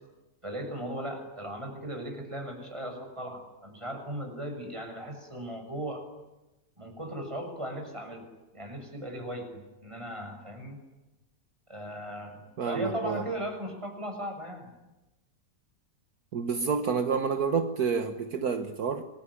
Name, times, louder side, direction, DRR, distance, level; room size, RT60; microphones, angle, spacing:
voice 1, 0.4-6.0 6.8-8.2 8.5-10.8 11.7-14.7, right 1 dB, 20° right, 5 dB, 6.7 m, -37 dB
voice 2, 12.6-13.2 16.3-19.0, right 6 dB, 70° right, 7 dB, 1.8 m, -29 dB
27.5 x 22.0 x 10.0 m, 1.0 s
omnidirectional pair, 1.7 m